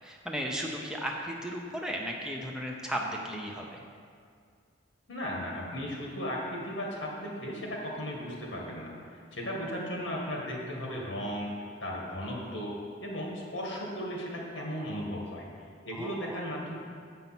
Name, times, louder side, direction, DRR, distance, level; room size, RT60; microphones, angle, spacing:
voice 1, 0.0-3.8 15.9-16.4, equal, 5° right, -1 dB, 0.6 m, -35 dB
voice 2, 5.1-11.5 11.8-15.5 15.8-16.7, equal, 70° left, -3 dB, 2.0 m, -36 dB
8.0 x 5.5 x 6.0 m, 2.2 s
head